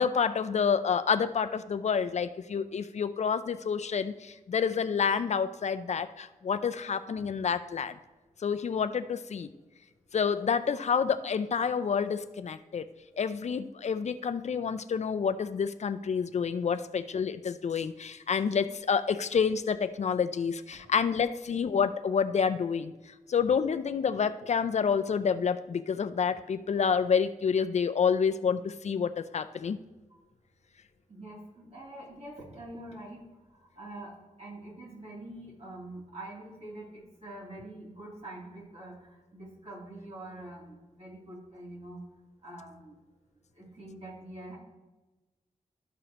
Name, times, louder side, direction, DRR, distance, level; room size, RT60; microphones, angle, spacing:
voice 1, 0.0-7.9 8.4-9.5 10.1-12.9 13.2-22.9 23.3-29.8, left 6 dB, 55° left, 11 dB, 0.4 m, -28 dB
voice 2, 31.1-33.2 33.5-42.0 42.4-42.9 43.5-44.6, right 1 dB, 50° right, -5 dB, 2.8 m, -45 dB
13.0 x 4.8 x 3.0 m, 1.1 s
wide cardioid pair, 95°, 14 cm